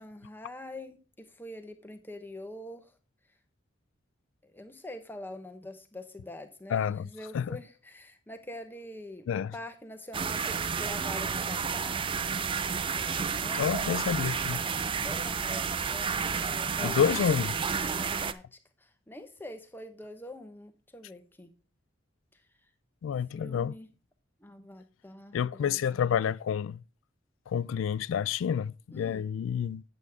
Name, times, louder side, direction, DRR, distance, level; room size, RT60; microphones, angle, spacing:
voice 1, 0.0-2.9 4.4-12.1 12.9-14.1 15.0-17.4 17.9-21.5 23.3-23.9 24.4-26.2 28.9-29.2, left 1 dB, 10° left, 1.0 m, -45 dB
voice 2, 6.7-7.1 7.3-7.6 9.3-9.5 13.6-14.6 16.8-17.6 23.0-23.8 25.3-26.8 27.5-29.8, left 8 dB, 85° left, 0.3 m, -29 dB
sound 1, 10.1-18.3, right 6 dB, 25° right, 0.4 m, -31 dB
8.4 x 8.1 x 3.5 m
head